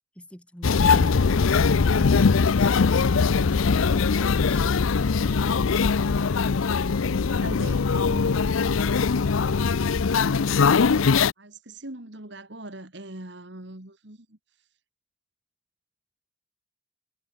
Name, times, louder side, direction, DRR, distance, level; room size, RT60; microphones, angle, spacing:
voice 1, 0.2-2.1, equal, 5° left, 7.5 m, -43 dB
sound 1, 0.6-11.3, left 5 dB, 90° left, 0.6 m, -21 dB
voice 2, 6.7-8.6 11.4-14.4, right 1 dB, 60° right, 2.6 m, -41 dB
head